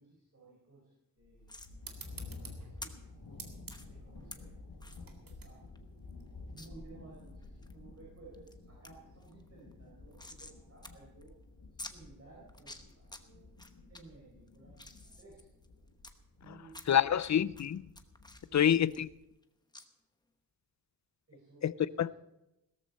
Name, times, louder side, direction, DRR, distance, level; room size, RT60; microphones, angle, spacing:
voice 1, 0.0-3.4 3.9-4.5 5.0-5.6 6.5-11.3 11.7-13.4 13.9-15.4 16.4-17.4 18.5-19.0 21.3-22.1, right 3 dB, 40° right, 4.8 m, -57 dB
sound 1, 1.2-19.2, left 3 dB, 85° left, 3.5 m, -52 dB
sound 2, 1.5-1.7 2.8-2.9 3.7-3.9 4.3-4.4 4.8-5.0 5.4-5.5 5.8-5.9 6.6-6.7 7.2-7.7 8.2-8.5 8.8-8.9 9.2-10.6 10.8-10.9 11.2-11.3 11.8-11.9 12.5-13.2 13.6-14.0 14.5-16.1 16.7-17.3 17.6-19.4 19.7-19.9, left 1 dB, 10° left, 1.0 m, -49 dB
sound 3, 1.8-6.9, right 5 dB, 65° right, 2.1 m, -52 dB
voice 2, 16.9-17.8 18.5-19.1 21.6-21.7 22.0-22.1, left 9 dB, 50° left, 0.5 m, -27 dB
17.0 x 13.5 x 4.2 m
wide cardioid pair, 145°, 36 cm